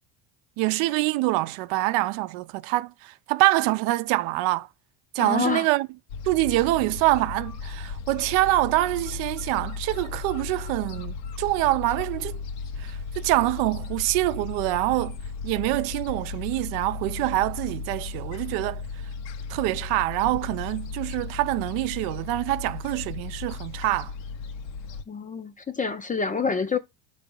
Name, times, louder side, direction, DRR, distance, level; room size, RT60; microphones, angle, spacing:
voice 1, 0.6-4.7 5.1-5.9 6.2-12.4 12.8-15.2 15.4-18.8 19.5-24.1, right 18 dB, 80° right, 0.7 m, -25 dB
voice 2, 5.2-5.7 25.1-26.8, left 5 dB, 15° left, 0.4 m, -27 dB
Gull seagull, 6.1-25.0, left 5 dB, 85° left, 1.1 m, -36 dB
6.0 x 3.4 x 5.4 m
cardioid pair, 120°, 49 cm